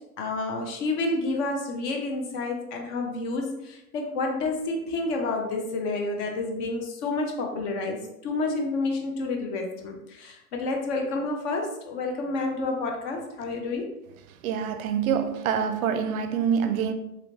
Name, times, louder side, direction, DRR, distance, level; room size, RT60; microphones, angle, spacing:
voice 1, 0.2-13.9, left 3 dB, 45° left, 0.9 m, -29 dB
voice 2, 14.4-16.9, right 7 dB, 65° right, 0.5 m, -26 dB
3.1 x 3.0 x 2.8 m
hypercardioid pair, 115°, 47 cm